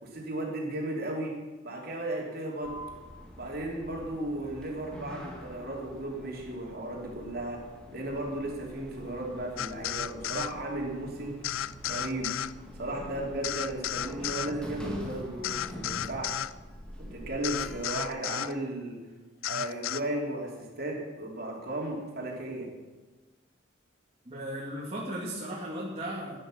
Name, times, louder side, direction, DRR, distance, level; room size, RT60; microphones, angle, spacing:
voice 1, 0.0-2.8 3.3-7.6 7.9-11.4 11.8-12.3 12.8-16.4 17.0-19.0 19.5-22.7, right 1 dB, 45° right, -1 dB, 3.1 m, -35 dB
Sliding door, 2.6-17.9, left 1 dB, 5° left, 2.0 m, -45 dB
sound 1, 9.6-10.5 11.4-12.5 13.4-14.5 15.4-16.5 17.4-18.5 19.4-20.0, left 11 dB, 75° left, 0.4 m, -33 dB
voice 2, 24.3-26.3, right 1 dB, 30° right, -6 dB, 2.3 m, -36 dB
14.0 x 9.8 x 6.4 m, 1.3 s
head